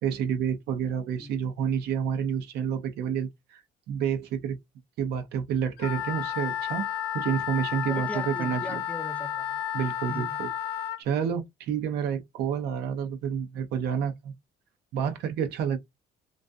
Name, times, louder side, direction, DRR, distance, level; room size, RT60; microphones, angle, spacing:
voice 1, 0.0-3.6 3.9-4.6 5.0-6.9 7.1-8.8 9.7-10.5 11.0-14.3 14.9-15.8, right 8 dB, 75° right, 0.7 m, -29 dB
Wind instrument woodwind instrument, 5.8-11.0, left 10 dB, 75° left, 0.4 m, -32 dB
voice 2, 7.9-9.6 10.1-10.3, left 1 dB, 10° left, 0.5 m, -39 dB
2.6 x 2.4 x 2.2 m
cardioid pair, 110°, 17 cm